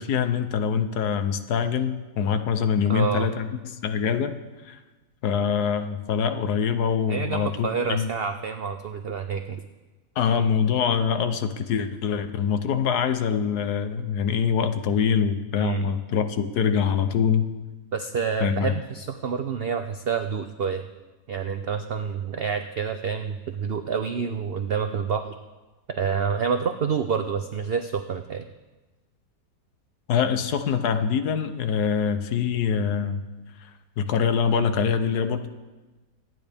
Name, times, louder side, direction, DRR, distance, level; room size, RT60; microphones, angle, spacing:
voice 1, 0.0-4.4 4.6-4.8 5.2-8.1 10.2-17.5 18.4-18.7 30.1-33.2 33.6-33.7 34.0-35.5, left 7 dB, 75° left, 9 dB, 1.3 m, -24 dB
voice 2, 2.9-3.3 7.1-9.6 15.6-15.9 17.9-20.9 21.3-25.4 25.9-28.4, right 6 dB, 80° right, 8 dB, 0.5 m, -28 dB
24.5 x 9.5 x 3.5 m, 1.2 s
omnidirectional pair, 1.7 m